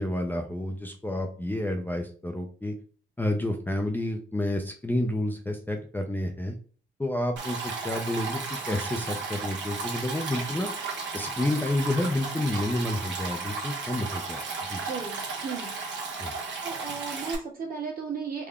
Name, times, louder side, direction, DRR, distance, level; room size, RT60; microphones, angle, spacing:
voice 1, 0.0-2.7 3.2-6.6 7.0-8.4 8.7-10.7 11.1-14.8 16.2-16.3, left 1 dB, 10° left, 3 dB, 0.5 m, -30 dB
Stream, 7.4-17.4, right 4 dB, 65° right, 1.2 m, -34 dB
voice 2, 14.8-15.7 16.6-18.5, right 5 dB, 45° right, -1 dB, 1.5 m, -35 dB
3.6 x 2.1 x 3.5 m, 0.42 s
cardioid pair, 90°, 20 cm